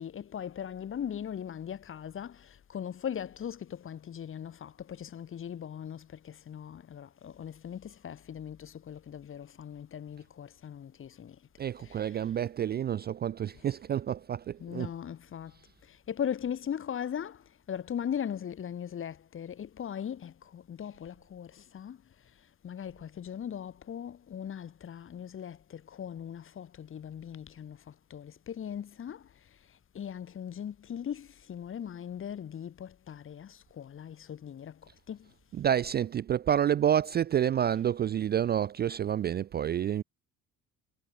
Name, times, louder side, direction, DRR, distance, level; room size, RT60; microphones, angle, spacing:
voice 1, 0.0-11.4 11.8-12.2 14.6-15.5 16.1-17.4 17.7-22.0 22.6-27.8 28.1-29.2 29.9-34.8 35.1-35.3, left 9 dB, 40° left, 1.1 m, -39 dB
voice 2, 11.6-14.9 35.5-40.0, right 9 dB, 30° right, 0.4 m, -29 dB
supercardioid pair, 75°, 34 cm